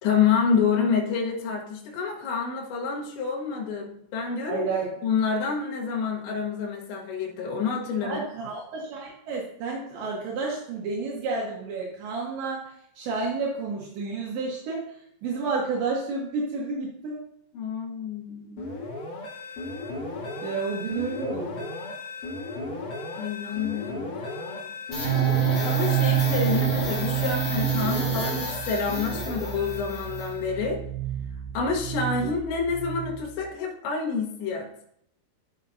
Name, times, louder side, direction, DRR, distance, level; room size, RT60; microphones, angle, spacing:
voice 1, 0.0-4.7 5.0-8.2 17.5-18.7 23.2-24.8 25.6-30.8 31.5-34.7, left 5 dB, 75° left, -1 dB, 3.6 m, -28 dB
voice 2, 4.5-4.9 8.0-12.7 13.0-14.8 15.2-17.2 20.4-21.7 32.2-32.3, right 4 dB, 75° right, -3 dB, 3.6 m, -30 dB
sound 1, 18.6-30.7, left 2 dB, 55° left, 3.7 m, -36 dB
sound 2, 24.9-33.4, right 8 dB, 25° left, 3.0 m, -27 dB
13.5 x 6.8 x 2.8 m, 0.72 s
omnidirectional pair, 5.3 m